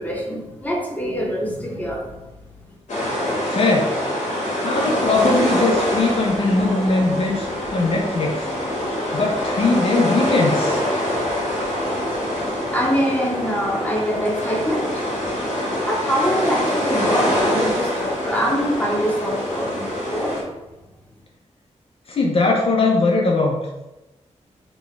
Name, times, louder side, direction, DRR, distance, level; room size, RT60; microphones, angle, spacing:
voice 1, 0.0-2.3 12.7-15.1 15.8-20.4, equal, 15° left, -3 dB, 0.8 m, -24 dB
sound 1, 2.9-20.4, equal, 85° left, 1.4 m, -24 dB
voice 2, 3.4-4.0 4.6-8.5 9.1-10.8 22.1-23.6, left 3 dB, 50° left, 0 dB, 0.5 m, -20 dB
4.0 x 2.3 x 3.2 m, 1.0 s
wide cardioid pair, 100°, 12 cm